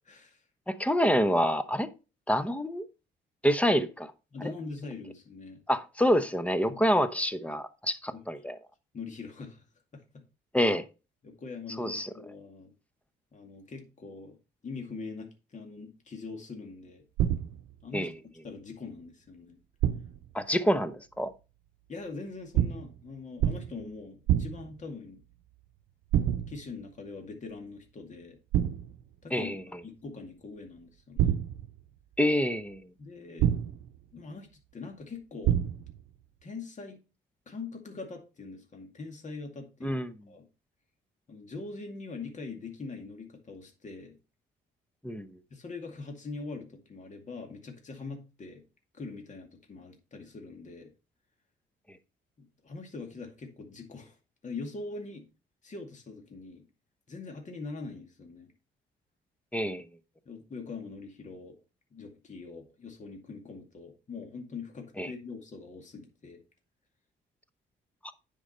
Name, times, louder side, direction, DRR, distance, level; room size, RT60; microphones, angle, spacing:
voice 1, 0.0-0.4 4.3-5.6 6.7-6.8 8.1-8.2 8.9-9.6 9.9-10.2 11.2-12.7 13.3-14.4 14.6-17.1 17.8-18.1 18.4-19.6 21.9-25.2 26.5-28.4 29.2-29.6 29.8-31.4 33.0-33.5 34.1-35.6 36.4-37.0 37.5-40.0 40.3-40.5 41.3-44.2 45.5-48.6 48.9-50.9 52.4-54.2 54.4-55.3 55.6-56.7 57.1-58.5 60.3-61.6 61.9-66.4, left 4 dB, 40° left, 2.2 m, -42 dB
voice 2, 0.7-1.9 2.3-2.9 3.4-4.1 5.7-8.6 10.5-10.8 11.8-12.1 17.9-18.1 20.3-21.3 29.3-29.6 32.2-32.8 39.8-40.1 45.0-45.3 59.5-59.9 65.0-65.1, equal, 5° left, 0.9 m, -27 dB
sound 1, 17.2-17.7 19.8-20.3 22.5-23.0 23.4-23.9 24.3-24.8 26.1-26.7 28.5-29.0 31.2-31.8 33.4-34.0 35.4-36.0, right 11 dB, 90° right, 0.7 m, -27 dB
10.0 x 5.2 x 4.3 m
cardioid pair, 90°, 20 cm